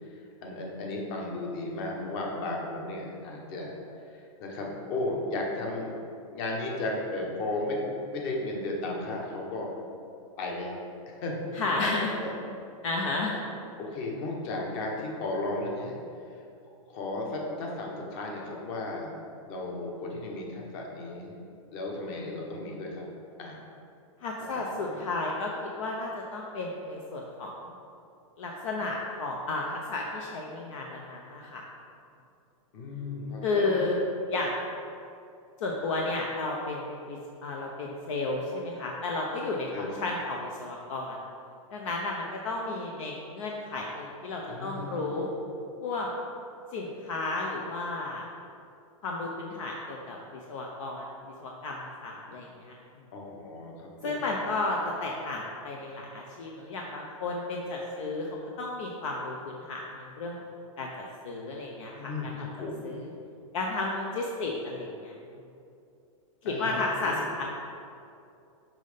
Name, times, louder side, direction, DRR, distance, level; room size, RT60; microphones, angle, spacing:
voice 1, 0.0-3.8 4.1-5.9 6.3-9.7 10.4-10.8 11.1-12.3 13.8-16.0 16.9-19.1 19.5-21.4 21.7-23.0 23.4-23.6 24.5-25.0 32.7-33.9 39.7-40.0 44.5-44.9 45.1-45.3 53.1-54.1 62.0-63.0 66.4-66.8 67.0-67.2, left 2 dB, 40° left, -1 dB, 1.4 m, -35 dB
voice 2, 11.5-12.1 12.8-13.4 24.2-27.5 28.4-31.6 33.4-34.0 34.3-34.6 35.6-41.2 41.7-45.3 45.8-46.1 46.7-48.2 49.0-51.1 51.4-52.8 54.0-60.4 60.8-62.5 62.8-63.1 63.5-65.1 66.4-67.4, left 2 dB, 60° left, -1 dB, 0.9 m, -33 dB
6.1 x 5.4 x 5.2 m, 2.6 s
supercardioid pair, 155°, 18 cm